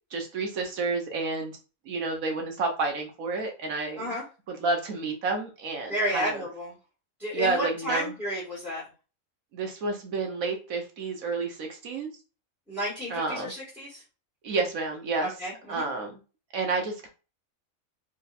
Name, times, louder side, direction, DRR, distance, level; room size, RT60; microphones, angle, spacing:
voice 1, 0.1-1.6 1.8-4.2 4.5-6.4 7.3-8.1 9.5-12.1 13.1-13.5 14.4-15.3 15.7-16.2 16.5-17.1, right 3 dB, 75° right, 3 dB, 1.4 m, -30 dB
voice 2, 5.9-6.8 7.2-8.8 12.7-14.0 15.2-15.9, equal, ahead, -8 dB, 2.0 m, -31 dB
4.2 x 3.6 x 2.5 m, 0.33 s
omnidirectional pair, 1.4 m